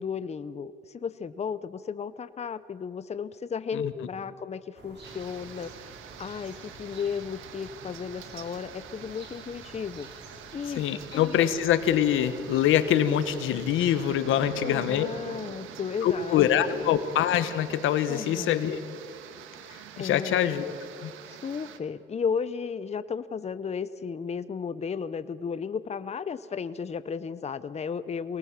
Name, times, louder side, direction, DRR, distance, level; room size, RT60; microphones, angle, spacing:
voice 1, 0.0-5.8 6.2-10.1 10.5-11.5 14.5-16.9 18.1-19.0 20.0-20.4 21.3-28.4, left 6 dB, 35° left, 14 dB, 0.7 m, -34 dB
sound 1, 4.7-14.2, right 2 dB, 60° right, 6.5 m, -49 dB
sound 2, 5.0-21.8, right 9 dB, 90° right, 1.5 m, -46 dB
voice 2, 10.8-15.1 16.0-18.8 20.0-20.7 21.0-21.1, left 10 dB, 85° left, 12 dB, 1.3 m, -24 dB
23.5 x 19.5 x 7.4 m, 2.4 s
cardioid pair, 90°, 20 cm